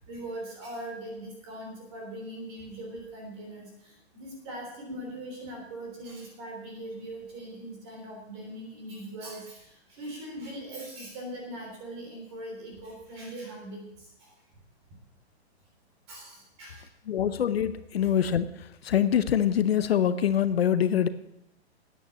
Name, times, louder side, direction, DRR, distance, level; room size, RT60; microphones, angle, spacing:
voice 1, 0.0-14.3 16.1-16.8 18.0-18.1, right 1 dB, 25° right, 0 dB, 3.4 m, -41 dB
voice 2, 17.1-18.5 18.8-21.1, left 9 dB, 65° left, 13 dB, 0.7 m, -24 dB
9.3 x 8.8 x 8.5 m, 0.83 s
hypercardioid pair, 180°, 33 cm